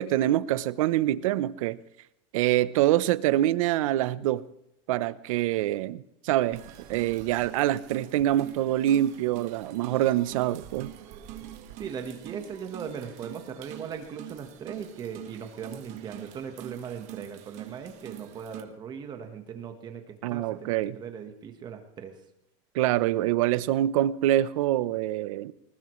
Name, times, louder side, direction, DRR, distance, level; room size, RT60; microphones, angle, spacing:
voice 1, 0.0-1.8 2.3-4.5 4.9-6.6 6.9-10.9 20.2-20.9 22.7-25.5, right 13 dB, 80° right, 0.8 m, -25 dB
sound 1, 6.5-18.6, right 13 dB, 45° right, 1.6 m, -45 dB
voice 2, 11.8-22.2, right 7 dB, 25° right, 1.3 m, -39 dB
20.0 x 19.5 x 3.2 m
supercardioid pair, 165°, 17 cm